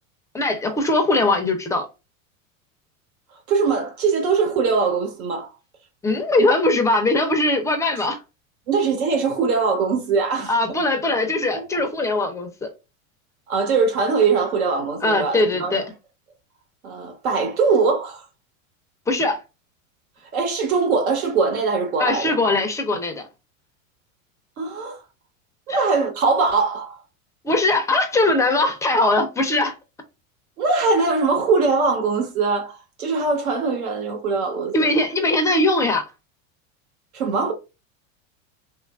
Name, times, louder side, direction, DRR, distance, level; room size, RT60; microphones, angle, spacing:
voice 1, 0.3-1.9 6.0-8.2 10.5-12.7 15.0-15.9 19.1-19.4 22.0-23.2 27.4-29.7 34.7-36.0, left 2 dB, 10° left, 0.4 m, -20 dB
voice 2, 3.5-5.5 8.7-10.5 11.5-11.6 13.5-15.8 16.8-18.2 20.3-22.4 24.6-25.0 25.7-27.0 30.6-34.9 37.1-37.5, right 4 dB, 90° right, 1.2 m, -21 dB
3.1 x 2.4 x 2.3 m
hypercardioid pair, 105°, 41 cm